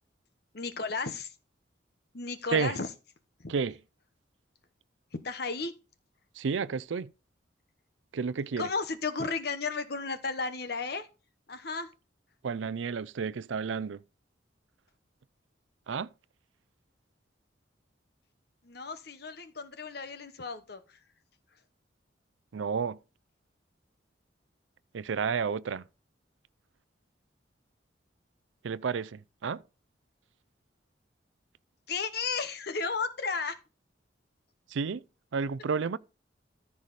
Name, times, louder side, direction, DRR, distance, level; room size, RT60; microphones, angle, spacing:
voice 1, 0.5-1.3 2.1-2.9 3.4-3.5 5.2-5.7 8.6-11.1 11.5-11.9 18.6-21.0 31.9-33.6, left 4 dB, 60° left, 1.1 m, -34 dB
voice 2, 6.4-7.1 8.1-8.7 12.4-14.0 15.9-16.1 22.5-23.0 24.9-25.8 28.6-29.6 34.7-35.0 35.3-36.0, right 5 dB, 85° right, 0.5 m, -31 dB
14.0 x 4.8 x 4.1 m
head